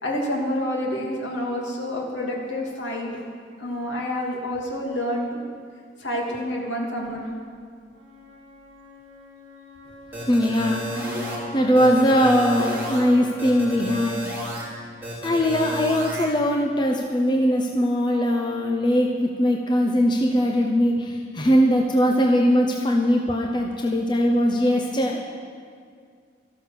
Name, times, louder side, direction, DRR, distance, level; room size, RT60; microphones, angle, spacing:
voice 1, 0.0-3.2 3.6-5.5 6.0-7.3, left 1 dB, 70° left, -1 dB, 2.7 m, -28 dB
Wind instrument woodwind instrument, 7.9-15.9, equal, 75° right, 2.8 m, -44 dB
sound 1, 10.1-11.4 11.8-13.0 13.4-14.6 15.0-16.3, equal, 10° right, 3.0 m, -32 dB
voice 2, 10.3-14.5 15.2-25.2, equal, 25° left, 1 dB, 0.8 m, -21 dB
13.0 x 11.5 x 6.6 m, 2.2 s
head